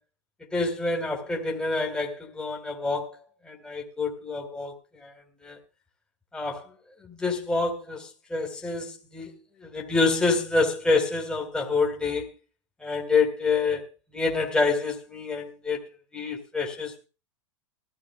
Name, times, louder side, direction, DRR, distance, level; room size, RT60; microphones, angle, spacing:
voice 1, 0.5-3.2 3.4-5.1 5.4-5.6 6.3-6.7 7.0-9.3 9.6-12.3 12.8-13.8 14.1-15.8 16.1-17.1, left 3 dB, 5° left, 2.5 m, -27 dB
19.5 x 14.0 x 2.3 m
hypercardioid pair, 115°, 16 cm